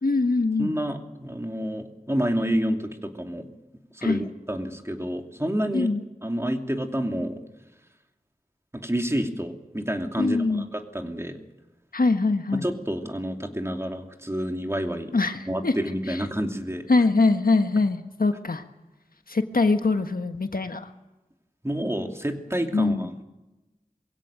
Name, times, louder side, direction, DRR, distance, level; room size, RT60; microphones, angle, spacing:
voice 1, 0.0-0.7 4.0-4.2 5.7-6.0 10.2-10.7 11.9-12.7 15.1-15.7 16.9-18.6 19.3-20.9 22.7-23.1, left 3 dB, 80° left, 7 dB, 1.4 m, -23 dB
voice 2, 0.6-3.5 3.9-5.9 6.2-7.4 8.7-11.4 12.5-15.1 15.5-16.9 21.6-23.2, equal, 20° right, 4 dB, 2.8 m, -29 dB
23.0 x 16.5 x 9.0 m, 1.1 s
wide cardioid pair, 45°, 15 cm